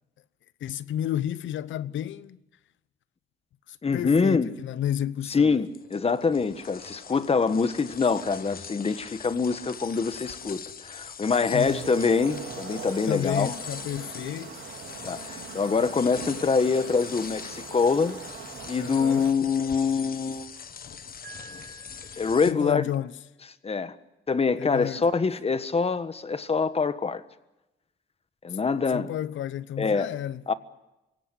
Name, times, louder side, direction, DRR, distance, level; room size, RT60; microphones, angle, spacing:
voice 1, 0.6-2.4 3.7-5.6 11.5-11.9 13.1-14.6 18.8-19.3 22.4-23.1 24.6-25.1 28.9-30.4, left 11 dB, 75° left, 0.9 m, -31 dB
voice 2, 3.8-4.5 5.3-13.5 15.0-18.2 18.7-20.5 22.2-22.8 23.6-23.9 24.3-27.2 28.4-29.1 29.8-30.1 30.5-30.6, left 5 dB, 30° left, 1.5 m, -25 dB
sound 1, 5.5-22.5, left 7 dB, 50° left, 1.4 m, -42 dB
sound 2, 11.6-19.3, right 8 dB, 80° right, 3.5 m, -42 dB
Piano, 21.2-23.2, right 4 dB, 65° right, 7.1 m, -50 dB
25.0 x 17.0 x 9.7 m
cardioid pair, 90°, 20 cm